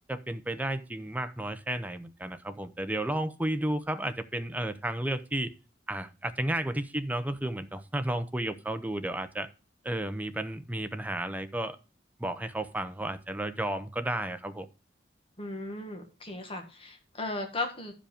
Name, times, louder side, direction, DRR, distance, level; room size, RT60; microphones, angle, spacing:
voice 1, 0.1-5.5 5.9-9.5 9.8-11.8 12.2-14.7, right 1 dB, 10° right, 0.7 m, -32 dB
voice 2, 15.4-17.9, left 2 dB, 30° left, 1.5 m, -36 dB
12.0 x 5.1 x 5.0 m
head